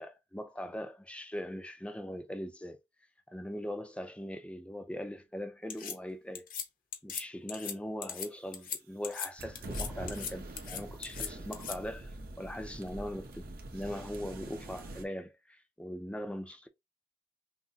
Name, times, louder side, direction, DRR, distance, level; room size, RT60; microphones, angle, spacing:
voice 1, 0.0-2.8 3.3-6.5 7.0-16.7, equal, 5° left, 0.5 m, -41 dB
sound 1, 5.7-5.9 6.3-6.6 6.9-7.2 7.5-7.7 8.0-8.3 8.5-8.8 9.0-9.3 9.5-10.3 10.6-11.7, left 8 dB, 50° left, 0.9 m, -38 dB
sound 2, 9.4-15.0, right 1 dB, 55° right, 1.0 m, -44 dB
5.9 x 2.1 x 2.7 m
head